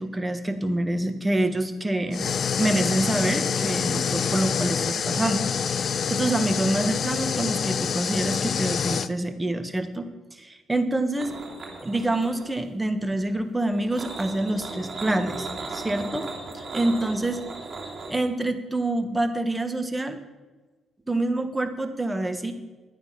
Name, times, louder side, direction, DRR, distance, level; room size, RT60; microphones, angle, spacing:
voice 1, 0.0-2.3 2.6-5.4 5.7-10.0 10.3-11.3 11.8-16.3 16.7-17.4 18.1-20.2 21.1-22.5, right 1 dB, 15° right, 7 dB, 1.4 m, -26 dB
sound 1, 2.1-9.1, left 7 dB, 50° left, 0.5 m, -26 dB
sound 2, 11.2-12.7 13.7-18.1, right 3 dB, 40° right, 3.0 m, -36 dB
12.0 x 9.3 x 5.8 m, 1.3 s
cardioid pair, 90°, 0 cm